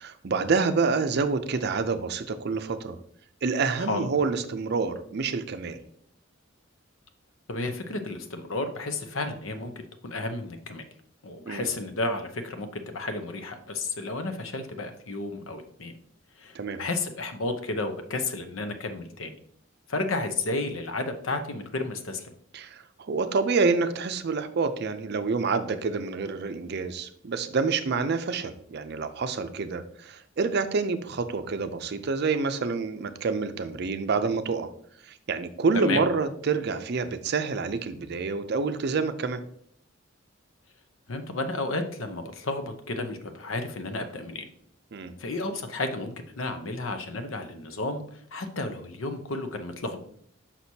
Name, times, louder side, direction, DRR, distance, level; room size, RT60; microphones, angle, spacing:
voice 1, 0.0-3.0 3.4-5.8 11.5-11.7 16.5-16.8 22.5-34.7 35.1-39.4 44.9-45.1, right 4 dB, 55° right, 10 dB, 0.5 m, -27 dB
voice 2, 7.5-9.7 10.0-10.8 11.2-15.9 16.4-19.4 19.9-22.3 35.7-36.0 41.1-44.4 45.2-50.0, left 2 dB, 80° left, 7 dB, 0.8 m, -32 dB
6.1 x 5.8 x 2.8 m, 0.64 s
head